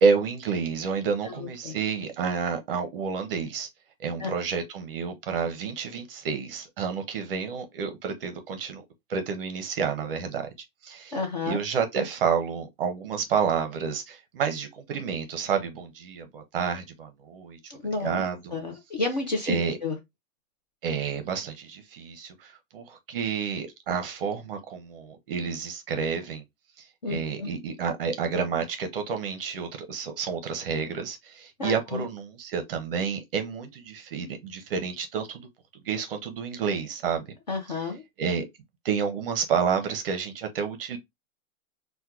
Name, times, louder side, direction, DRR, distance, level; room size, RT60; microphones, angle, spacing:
voice 1, 0.0-3.7 4.0-8.8 9.1-10.5 10.8-11.2 11.4-17.6 18.0-18.5 19.5-19.8 20.8-26.4 27.1-35.5 35.9-37.3 37.7-37.8 38.2-38.4 38.8-41.0, right 6 dB, 45° right, 0.6 m, -29 dB
voice 2, 1.3-1.8 4.2-4.3 11.1-11.6 17.7-18.2 18.5-20.0 27.0-27.5 31.6-32.0 37.5-38.0, left 3 dB, 35° left, 0.4 m, -31 dB
4.3 x 2.2 x 2.2 m
hypercardioid pair, 170°, 42 cm